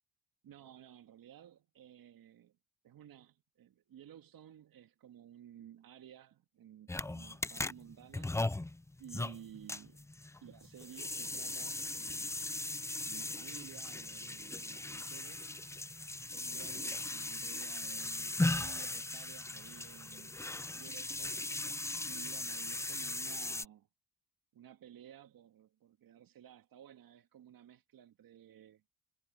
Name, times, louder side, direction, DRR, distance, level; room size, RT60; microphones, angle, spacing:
voice 1, 0.4-2.5 2.8-8.3 9.0-10.1 10.4-12.6 13.1-15.5 16.2-21.4 22.0-23.9 24.5-28.8, right 10 dB, 55° right, 2.0 m, -55 dB
sound 1, 6.9-23.7, left 2 dB, 5° left, 0.6 m, -38 dB
supercardioid pair, 65°, 41 cm